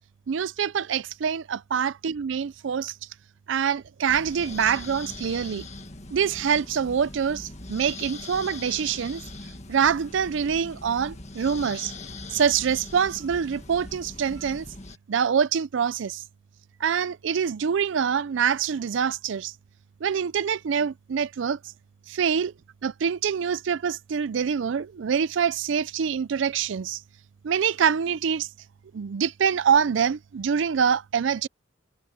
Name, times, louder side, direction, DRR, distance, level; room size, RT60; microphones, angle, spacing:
voice 1, 0.3-2.9 3.5-5.7 6.1-9.2 9.7-11.9 12.3-14.7 15.1-16.2 16.8-19.5 20.0-21.6 22.1-22.5 22.8-27.0 27.4-28.5 28.9-31.5, right 7 dB, 70° right, 0.4 m, -25 dB
sound 1, 4.1-15.0, left 2 dB, 35° left, 1.8 m, -41 dB
head